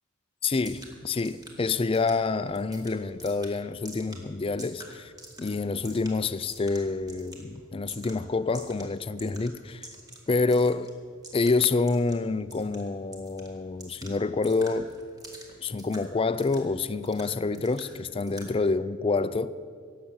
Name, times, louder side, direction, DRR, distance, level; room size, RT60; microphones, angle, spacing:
voice 1, 0.4-5.1 5.4-9.9 10.3-10.9 11.3-14.9 15.6-19.5, left 3 dB, 25° left, 0.3 m, -27 dB
sound 1, 0.6-18.5, right 1 dB, 15° right, 1.9 m, -49 dB
17.5 x 7.6 x 7.0 m
head